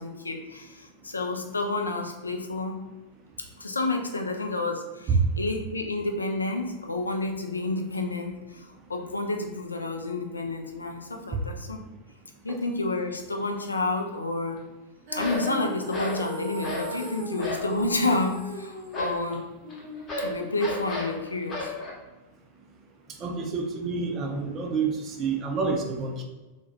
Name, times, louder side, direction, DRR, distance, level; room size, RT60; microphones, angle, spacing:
voice 1, 0.0-2.8 3.6-11.8 12.4-14.6 15.1-19.4 20.2-21.7, left 2 dB, 80° left, 3 dB, 0.3 m, -30 dB
sound 1, 13.4-13.6 15.2-15.5 15.9-16.3 16.6-17.0 17.4-17.7 18.9-21.9, left 2 dB, 30° left, 0.7 m, -33 dB
Female singing, 15.1-21.3, equal, 60° right, 0.8 m, -37 dB
voice 2, 23.2-26.2, right 4 dB, 30° right, 2 dB, 0.4 m, -28 dB
2.2 x 2.1 x 2.8 m, 1.1 s
figure-of-eight pair, 90°, 0 cm